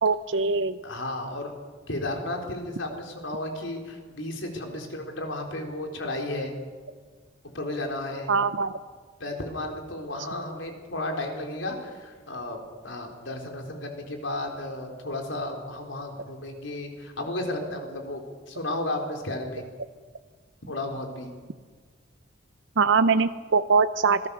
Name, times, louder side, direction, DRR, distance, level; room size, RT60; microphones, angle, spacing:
voice 1, 0.0-0.8 8.3-8.8 22.8-24.3, right 5 dB, 75° right, 11 dB, 0.6 m, -22 dB
voice 2, 0.8-1.5 1.9-6.5 7.5-8.3 9.2-18.2 18.5-19.6 20.7-21.3, left 1 dB, 85° left, 3 dB, 4.1 m, -33 dB
26.5 x 18.0 x 7.1 m, 1.5 s
head